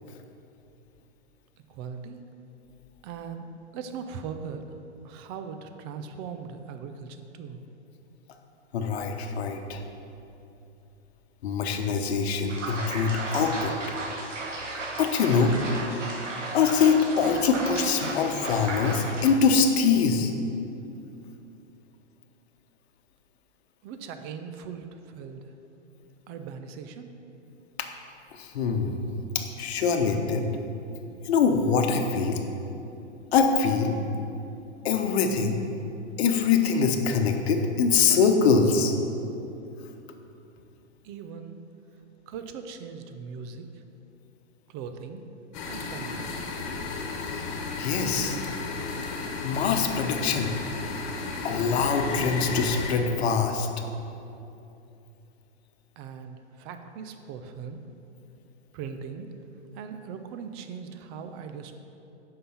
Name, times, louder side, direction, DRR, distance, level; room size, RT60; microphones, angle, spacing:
voice 1, 1.7-2.2 3.0-3.5 3.7-4.8 5.0-7.6 23.8-25.5 26.3-27.1 41.0-41.6 42.3-43.8 44.7-45.2 45.6-46.3 56.0-57.8 58.7-59.3 59.7-61.7, right 6 dB, 20° right, 7 dB, 0.4 m, -39 dB
voice 2, 8.7-9.8 11.4-13.7 15.0-15.6 16.5-20.3 27.8-27.9 28.3-29.0 29.3-30.5 31.2-32.5 33.3-34.0 34.8-35.6 36.2-38.9 47.2-47.4 47.8-48.4 49.4-50.5 51.4-53.7, left 5 dB, 60° left, 5 dB, 1.0 m, -24 dB
sound 1, 12.5-19.3, right 2 dB, 85° right, 1.3 m, -34 dB
sound 2, 45.5-52.9, left 4 dB, 40° left, 1.4 m, -33 dB
8.3 x 5.6 x 5.7 m, 2.8 s
hypercardioid pair, 125°, 36 cm